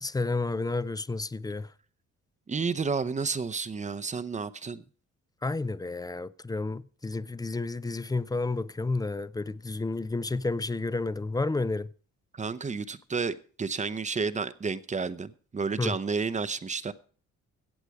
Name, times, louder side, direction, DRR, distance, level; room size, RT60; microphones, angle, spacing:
voice 1, 0.0-1.7 5.4-11.9 15.8-15.9, left 3 dB, 15° left, 0.4 m, -31 dB
voice 2, 2.5-4.8 12.4-16.9, right 5 dB, 25° right, 0.7 m, -31 dB
15.0 x 8.1 x 4.8 m
cardioid pair, 90°, 30 cm